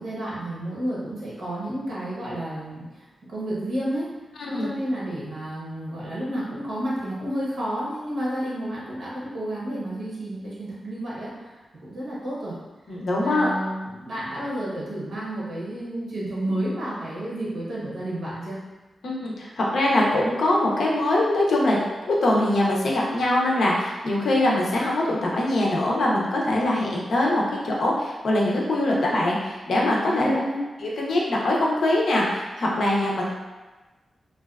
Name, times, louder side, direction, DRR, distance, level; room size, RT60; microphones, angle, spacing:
voice 1, 0.0-4.1 4.5-12.6 12.8-18.6 30.1-30.7, right 1 dB, 80° right, -7 dB, 0.7 m, -31 dB
voice 2, 4.4-4.7 12.9-13.5 19.0-21.8 22.1-30.4 30.8-33.3, left 1 dB, 80° left, -3 dB, 0.5 m, -23 dB
2.5 x 2.2 x 2.3 m, 1.2 s
wide cardioid pair, 140°, 0 cm